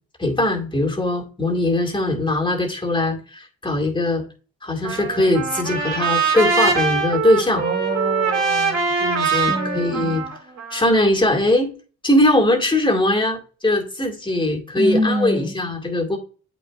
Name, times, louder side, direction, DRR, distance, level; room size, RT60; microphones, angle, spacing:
voice 1, 0.2-4.2 4.6-7.6 9.0-10.2 10.7-11.7 12.0-16.2, left 1 dB, 15° left, 2.1 m, -20 dB
Trumpet, 4.8-11.1, right 5 dB, 60° right, 2.7 m, -23 dB
voice 2, 7.5-8.8 9.5-10.1 14.7-15.5, equal, 20° right, 2.6 m, -25 dB
8.2 x 6.1 x 2.4 m
cardioid pair, 90°, 30 cm